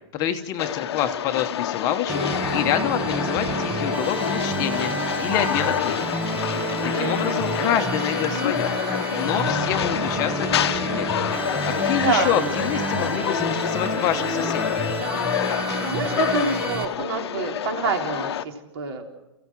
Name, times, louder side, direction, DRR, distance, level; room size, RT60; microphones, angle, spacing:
voice 1, 0.1-2.2 2.5-4.9 5.2-6.2 6.8-8.8 9.1-11.2 11.5-14.7, left 10 dB, 25° left, 7 dB, 1.0 m, -27 dB
sound 1, 0.6-18.4, left 10 dB, 60° left, 1.0 m, -27 dB
sound 2, 2.1-16.9, right 3 dB, 10° right, 0.9 m, -29 dB
voice 2, 6.9-7.7 12.0-12.4 15.6-19.2, right 5 dB, 55° right, 3 dB, 3.7 m, -28 dB
29.5 x 16.0 x 6.2 m, 0.98 s
hypercardioid pair, 165°, 15 cm